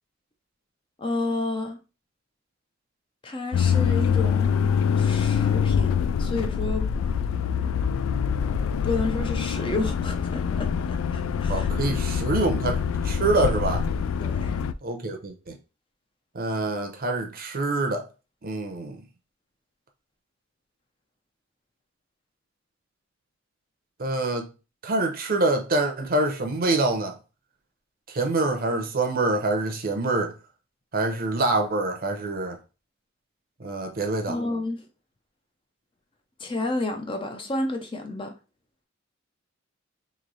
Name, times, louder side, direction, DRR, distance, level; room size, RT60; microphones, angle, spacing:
voice 1, 1.0-1.8 3.2-5.9 6.2-6.9 8.8-11.7 14.2-14.6 34.3-34.9 36.4-38.3, left 2 dB, 25° left, 0.5 m, -30 dB
sound 1, 3.5-14.7, left 7 dB, 85° left, 0.3 m, -25 dB
voice 2, 11.5-13.8 14.8-15.6 16.3-18.1 18.4-19.0 24.0-24.5 24.8-27.2 28.1-30.4 30.9-32.6 33.6-34.4, right 2 dB, 50° right, 0.7 m, -26 dB
3.1 x 2.7 x 4.0 m
head